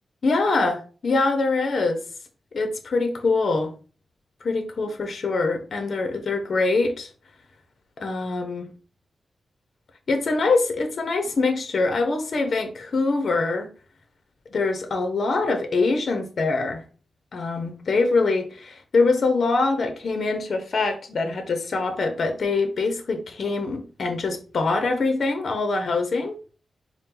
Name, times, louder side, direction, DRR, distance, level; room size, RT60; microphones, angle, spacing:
voice 1, 0.2-2.0 2.5-3.7 4.4-7.1 8.0-8.7 10.1-13.7 14.5-16.8 17.3-26.4, left 3 dB, 60° left, 0.8 m, -24 dB
4.2 x 2.2 x 3.8 m
cardioid pair, 80°, 0 cm